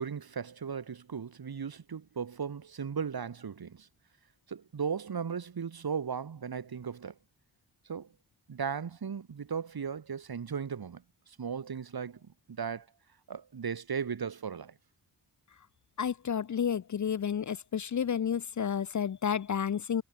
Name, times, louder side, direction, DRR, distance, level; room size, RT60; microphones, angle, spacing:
voice 1, 0.0-3.9 4.5-7.1 7.8-8.1 8.5-12.9 13.3-14.7, right 6 dB, 60° right, 6.2 m, -37 dB
voice 2, 16.0-20.0, left 8 dB, 45° left, 0.7 m, -31 dB
wide cardioid pair, 105°, 41 cm